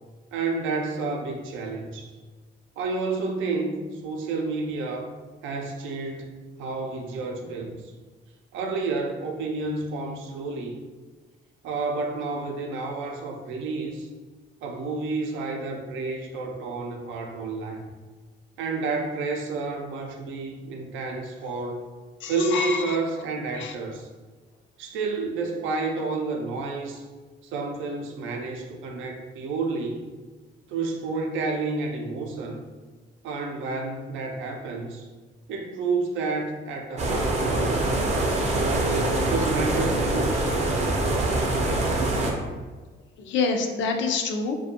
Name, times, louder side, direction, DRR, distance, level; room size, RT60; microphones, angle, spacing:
voice 1, 0.3-2.2 2.8-5.1 5.4-7.8 8.5-10.8 11.6-14.1 14.6-17.8 18.6-21.8 22.3-24.1 24.8-27.0 27.4-30.0 30.7-32.6 33.2-35.1 35.5-37.9 38.4-40.4, right 3 dB, 90° right, 2 dB, 0.4 m, -30 dB
voice 2, 22.2-22.8 23.6-23.7 43.2-44.6, left 4 dB, 75° left, 4 dB, 0.4 m, -26 dB
sound 1, 37.0-42.3, right 2 dB, 35° right, 0.5 m, -24 dB
2.4 x 2.2 x 2.7 m, 1.4 s
cardioid pair, 100°, 19 cm